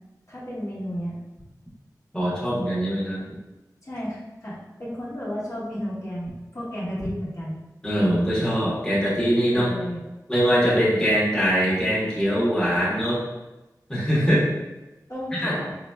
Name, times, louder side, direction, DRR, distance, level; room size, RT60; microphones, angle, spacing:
voice 1, 0.3-1.2 3.8-7.6 9.5-10.0 14.2-14.5 15.1-15.7, equal, 50° left, -8 dB, 1.3 m, -32 dB
voice 2, 2.1-3.2 7.8-9.7 10.3-13.2 13.9-14.4 15.4-15.5, equal, 10° left, -8 dB, 1.1 m, -22 dB
4.2 x 2.8 x 2.2 m, 1.0 s
wide cardioid pair, 75°, 7 cm